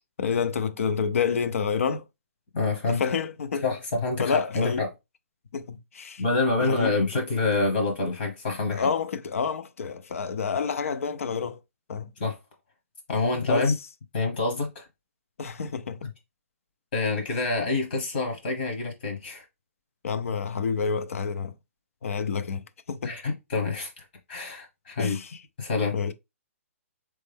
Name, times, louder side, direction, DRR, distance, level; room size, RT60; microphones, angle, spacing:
voice 1, 0.2-2.0 2.9-3.6 4.2-4.8 5.5-6.2 6.6-6.9 8.7-11.6 11.9-12.1 13.5-13.7 15.4-16.0 20.0-21.5 22.0-22.6 22.9-23.1 25.0-25.4 25.9-26.1, left 6 dB, 70° left, 0.6 m, -28 dB
voice 2, 2.5-3.0 3.6-4.9 6.2-8.9 12.2-12.4 13.1-13.7 14.1-14.9 16.9-19.4 23.0-25.2 25.6-26.0, left 3 dB, 45° left, 1.3 m, -27 dB
4.3 x 3.2 x 3.5 m
hypercardioid pair, 175°, 8 cm